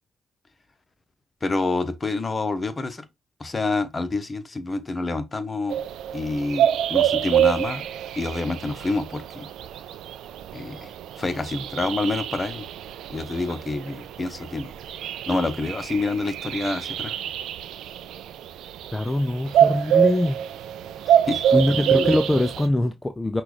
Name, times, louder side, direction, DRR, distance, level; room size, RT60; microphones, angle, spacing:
voice 1, 1.4-3.0 3.4-5.8 6.1-7.9 8.2-9.5 10.5-12.7 13.1-14.7 15.3-17.2 21.1-22.1, left 3 dB, 35° left, 0.9 m, -28 dB
sound 1, 5.7-22.7, right 9 dB, 80° right, 0.4 m, -26 dB
voice 2, 18.9-20.4 21.5-23.4, left 1 dB, 20° left, 0.5 m, -23 dB
5.8 x 2.4 x 3.3 m
hypercardioid pair, 45°, 0 cm